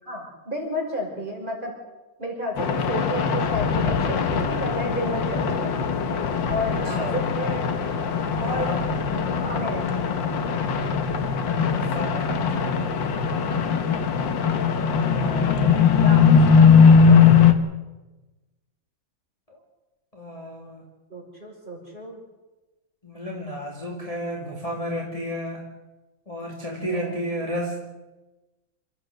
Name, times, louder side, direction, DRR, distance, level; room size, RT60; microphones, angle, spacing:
voice 1, 0.1-1.8 2.2-5.7 6.5-7.7 8.4-8.7 9.1-10.3 12.3-13.9 16.0-16.4 16.7-17.4 21.1-22.2 26.9-27.2, equal, 25° right, -1 dB, 6.0 m, -32 dB
sound 1, 2.6-17.5, left 6 dB, 65° left, 2.0 m, -20 dB
voice 2, 6.8-7.3 8.5-8.8 11.6-12.9 15.1-15.9 19.5-19.6 20.1-20.8 23.0-25.6 26.3-27.9, equal, 15° left, -2 dB, 2.8 m, -32 dB
28.5 x 13.5 x 8.0 m, 1.1 s
omnidirectional pair, 2.2 m